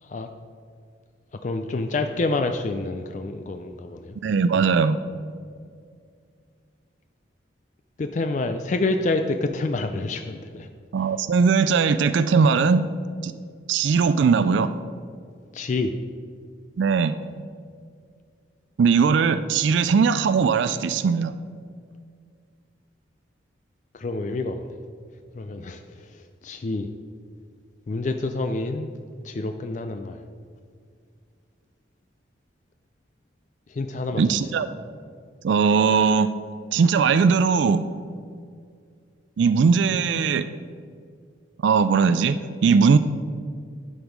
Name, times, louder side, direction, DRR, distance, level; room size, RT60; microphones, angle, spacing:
voice 1, 1.4-4.2 8.0-10.7 15.5-15.9 23.9-24.7 25.3-26.9 27.9-28.9 29.2-30.2 33.7-34.4, left 2 dB, 40° left, 7 dB, 0.3 m, -28 dB
voice 2, 4.2-5.0 10.9-12.9 13.2-13.3 13.7-14.7 16.8-17.2 18.8-21.3 34.2-34.7 35.4-36.3 36.7-37.8 39.4-40.5 41.6-43.0, right 5 dB, 75° right, 12 dB, 0.3 m, -19 dB
11.5 x 5.3 x 4.6 m, 2.2 s
head